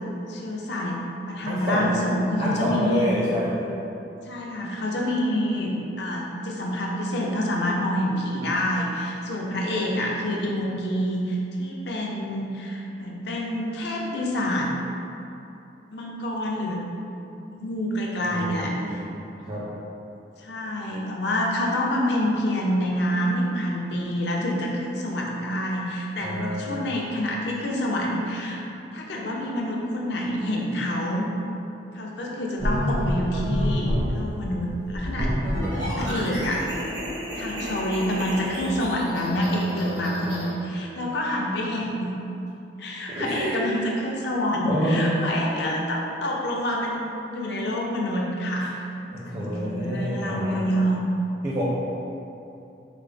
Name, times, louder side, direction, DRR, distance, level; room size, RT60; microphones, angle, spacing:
voice 1, 0.3-1.0 1.3-3.1 4.3-5.7 6.0-14.7 15.9-16.9 17.5-19.0 20.4-28.6 28.9-31.3 31.9-35.3 35.7-36.6 37.4-42.1 42.8-48.7 49.3-51.1, equal, 60° left, -2 dB, 0.5 m, -27 dB
voice 2, 1.4-2.1 2.4-3.6 18.2-19.1 19.4-19.6 26.2-27.0 43.2-43.7 44.7-45.3 48.6-48.7 49.1-50.7 51.4-51.6, equal, 35° right, -7 dB, 0.5 m, -28 dB
sound 1, 32.6-34.2 34.9-40.5, equal, 75° right, 1.1 m, -28 dB
4.8 x 2.0 x 3.3 m, 2.8 s
head